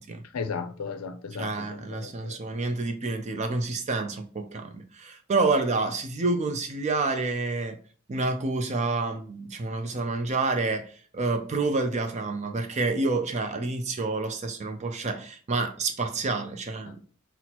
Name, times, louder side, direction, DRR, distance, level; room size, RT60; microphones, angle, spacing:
voice 1, 0.3-2.4 16.9-17.0, left 5 dB, 70° left, 0.5 m, -35 dB
voice 2, 1.4-7.8 8.1-17.0, right 3 dB, 30° right, 0.4 m, -28 dB
5.9 x 2.0 x 2.8 m
head